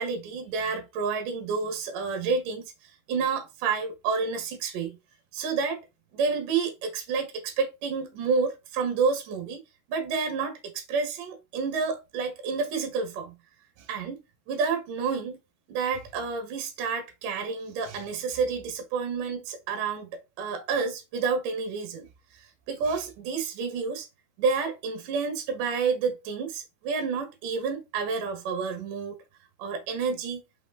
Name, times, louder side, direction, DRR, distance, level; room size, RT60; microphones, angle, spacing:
voice 1, 0.0-5.0 5.3-5.8 6.1-9.6 9.9-13.3 13.8-14.2 14.5-15.4 15.7-22.1 22.7-24.1 24.4-29.2 29.6-30.4, right 5 dB, 65° right, 2.7 m, -29 dB
5.7 x 4.9 x 3.8 m
omnidirectional pair, 4.4 m